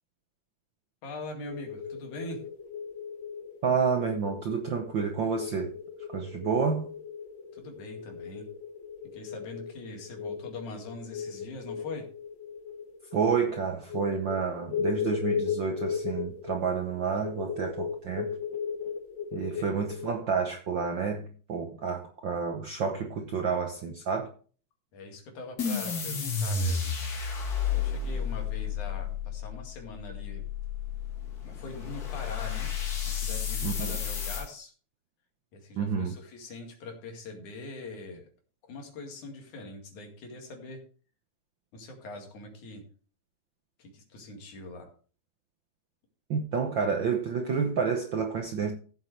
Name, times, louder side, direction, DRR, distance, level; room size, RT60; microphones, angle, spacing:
voice 1, 1.0-2.4 7.5-8.5 9.1-12.1 19.5-19.7 24.9-26.9 27.7-30.4 31.5-32.7 33.0-34.7 35.5-38.2 38.6-40.8 41.7-42.8 43.8-44.9, left 2 dB, 90° left, 3.7 m, -42 dB
sound 1, 1.5-20.1, left 7 dB, 70° left, 2.1 m, -37 dB
voice 2, 3.6-5.7 6.1-6.9 13.1-18.3 19.3-24.3 33.6-33.9 35.7-36.1 46.3-48.7, right 6 dB, 70° right, 1.1 m, -29 dB
sound 2, 25.6-34.5, left 6 dB, 40° left, 1.7 m, -32 dB
15.0 x 7.4 x 3.3 m
omnidirectional pair, 3.3 m